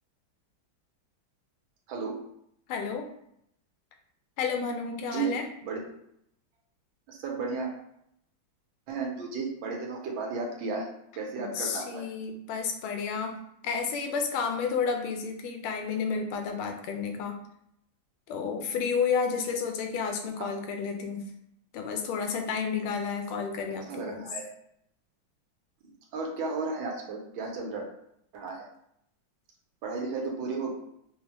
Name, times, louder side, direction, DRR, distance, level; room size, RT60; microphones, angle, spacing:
voice 1, 1.9-2.2 5.1-5.8 7.1-7.7 8.9-10.9 11.1-12.1 20.3-20.5 23.8-24.5 26.1-27.9 28.3-28.7 29.8-30.7, right 4 dB, 75° right, 1 dB, 1.4 m, -34 dB
voice 2, 2.7-3.1 4.4-5.4 11.4-13.4 13.6-17.4 18.3-21.2 21.7-24.3 30.0-30.1, left 5 dB, 85° left, 4 dB, 1.4 m, -31 dB
4.7 x 2.1 x 3.0 m, 0.74 s
omnidirectional pair, 2.3 m